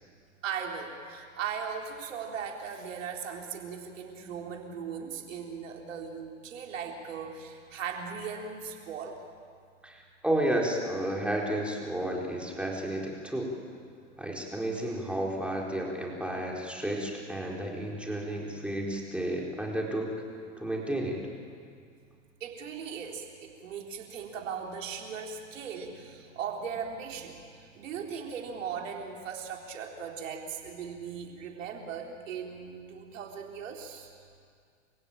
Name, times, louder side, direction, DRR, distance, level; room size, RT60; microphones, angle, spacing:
voice 1, 0.4-9.2 22.4-34.2, right 6 dB, 80° right, 1 dB, 4.1 m, -38 dB
voice 2, 9.8-13.5 14.2-20.1 20.6-21.2, right 1 dB, 5° right, -2 dB, 4.4 m, -32 dB
27.5 x 16.5 x 9.1 m, 2.2 s
hypercardioid pair, 105°, 38 cm